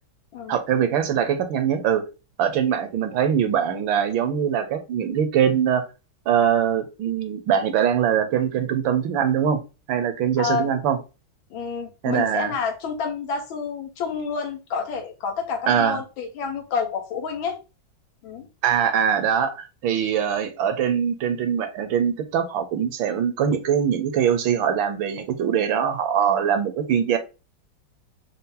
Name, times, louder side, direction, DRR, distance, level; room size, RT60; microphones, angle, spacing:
voice 1, 0.5-2.0 2.4-5.8 6.3-9.6 9.9-11.0 12.0-12.5 15.7-16.0 18.6-27.2, right 8 dB, 75° right, 1.4 m, -22 dB
voice 2, 10.4-10.7 11.5-17.6 18.2-18.5, left 5 dB, 75° left, 1.7 m, -29 dB
5.6 x 2.0 x 3.7 m
omnidirectional pair, 2.3 m